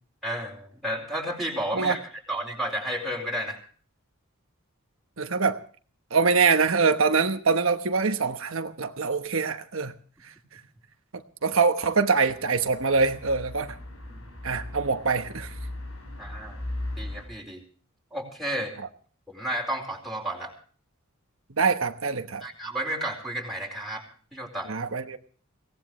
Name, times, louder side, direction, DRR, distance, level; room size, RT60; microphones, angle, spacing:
voice 1, 0.2-3.6 14.1-14.2 16.2-16.6 17.0-17.6 18.1-18.7 19.3-20.5 22.4-24.0 24.3-24.7, right 1 dB, ahead, 0 dB, 4.5 m, -32 dB
voice 2, 5.2-5.6 6.1-9.9 11.1-13.8 14.4-15.5 21.6-22.4 24.7-25.2, right 4 dB, 70° right, 7 dB, 1.2 m, -24 dB
sound 1, 12.2-17.2, left 1 dB, 85° left, 7.9 m, -38 dB
23.0 x 18.0 x 3.2 m, 0.44 s
head